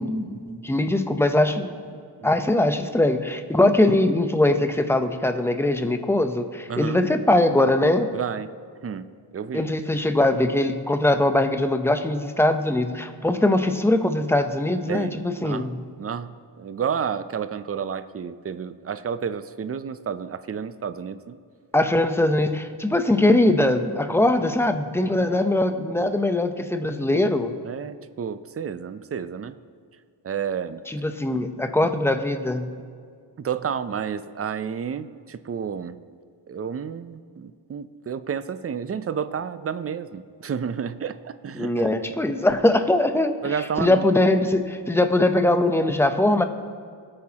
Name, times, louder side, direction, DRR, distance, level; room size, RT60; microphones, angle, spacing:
voice 1, 0.0-1.7 2.2-8.1 9.5-15.8 21.7-27.5 30.9-32.7 41.6-46.4, left 1 dB, 5° left, 7 dB, 0.7 m, -21 dB
voice 2, 6.7-7.0 8.1-8.5 8.8-9.7 14.9-15.7 16.0-21.4 22.9-23.0 25.2-25.4 27.6-29.5 30.2-30.8 33.4-36.0 36.5-41.9 43.4-44.1, right 7 dB, 35° right, 13 dB, 0.5 m, -31 dB
20.0 x 8.7 x 2.9 m, 2.2 s
wide cardioid pair, 110°, 44 cm